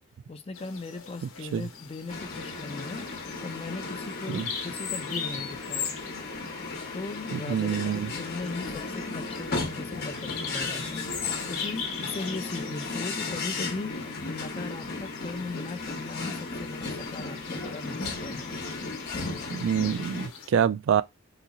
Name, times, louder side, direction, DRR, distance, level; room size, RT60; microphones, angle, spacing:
voice 1, 0.3-3.1 3.4-6.0 6.9-11.0 11.4-18.5, left 3 dB, 30° left, 0.4 m, -38 dB
Bird vocalization bird call bird song, 0.5-20.5, left 6 dB, 90° left, 0.8 m, -41 dB
sound 1, 2.1-20.3, left 3 dB, 50° left, 0.9 m, -35 dB
voice 2, 7.3-8.1 19.5-21.0, right 8 dB, 65° right, 0.3 m, -26 dB
3.9 x 2.9 x 2.3 m
head